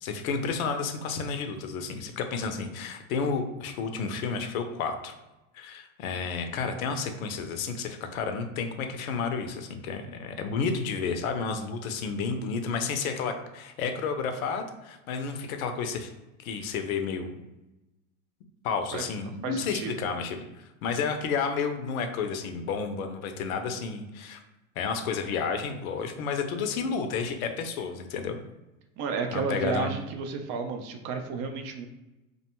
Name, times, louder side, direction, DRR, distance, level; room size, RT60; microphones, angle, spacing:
voice 1, 0.0-5.1 5.5-16.1 16.4-17.3 18.6-24.4 24.8-28.4 29.3-29.9, left 5 dB, 75° left, 6 dB, 0.6 m, -31 dB
voice 2, 19.4-20.0 29.0-31.9, right 5 dB, 45° right, 5 dB, 0.5 m, -32 dB
2.5 x 2.2 x 2.8 m, 1.0 s
hypercardioid pair, 95°, 41 cm